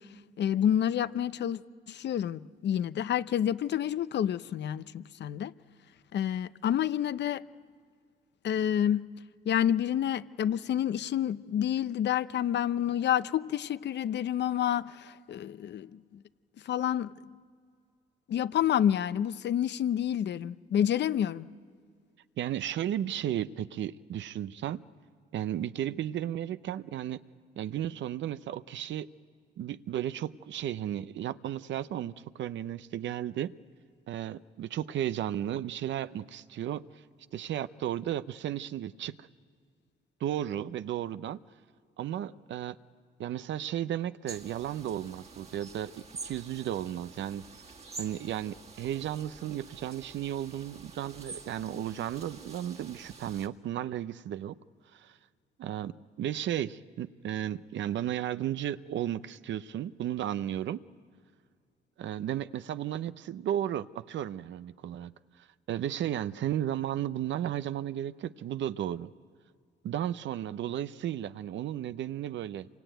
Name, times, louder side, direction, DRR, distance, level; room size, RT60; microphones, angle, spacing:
voice 1, 0.4-1.6 1.9-5.5 6.1-7.4 8.4-9.0 9.5-16.0 16.7-17.1 18.3-21.5, left 10 dB, 60° left, 0.7 m, -28 dB
voice 2, 22.4-24.8 25.3-27.2 27.6-29.1 29.6-33.5 34.1-37.0 37.3-39.3 40.2-41.4 42.0-42.8 43.2-47.4 48.0-54.5 54.9-55.2 55.6-60.8 62.0-65.1 65.4-69.1 69.8-72.7, right 11 dB, 70° right, 0.7 m, -34 dB
sound 1, 44.3-53.5, right 4 dB, 30° right, 1.9 m, -48 dB
27.0 x 24.0 x 9.1 m
cardioid pair, 90°, 20 cm